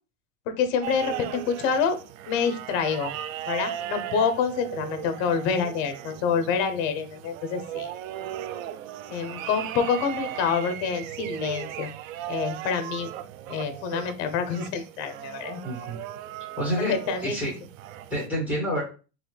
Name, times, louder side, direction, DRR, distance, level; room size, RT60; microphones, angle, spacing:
voice 1, 0.5-2.0 2.3-3.1 3.5-7.9 9.1-11.9 12.3-13.1 13.5-15.6 16.8-17.3, left 6 dB, 35° left, 8 dB, 0.7 m, -27 dB
sound 1, 0.8-18.3, right 11 dB, 90° right, 0.5 m, -37 dB
voice 2, 15.6-16.0 16.6-17.0 17.2-17.5 18.1-18.8, equal, 5° right, -4 dB, 1.8 m, -28 dB
4.0 x 2.9 x 3.2 m, 0.34 s
supercardioid pair, 165°, 39 cm